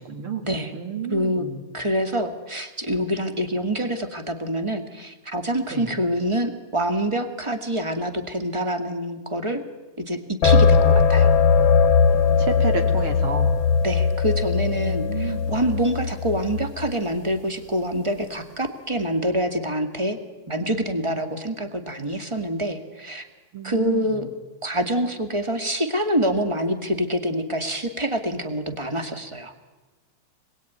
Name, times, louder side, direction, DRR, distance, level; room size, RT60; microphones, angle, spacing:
voice 1, 0.0-1.6 5.7-5.9 12.1-13.7 14.8-15.5 23.5-24.1, right 5 dB, 45° right, 5 dB, 3.2 m, -31 dB
voice 2, 1.1-9.6 10.0-11.3 13.8-20.2 20.5-23.2 23.6-24.3 24.6-29.6, right 1 dB, 15° right, 7 dB, 1.3 m, -26 dB
sound 1, 10.4-17.0, left 5 dB, 60° left, 1.4 m, -19 dB
27.0 x 21.5 x 9.4 m, 1.2 s
omnidirectional pair, 3.5 m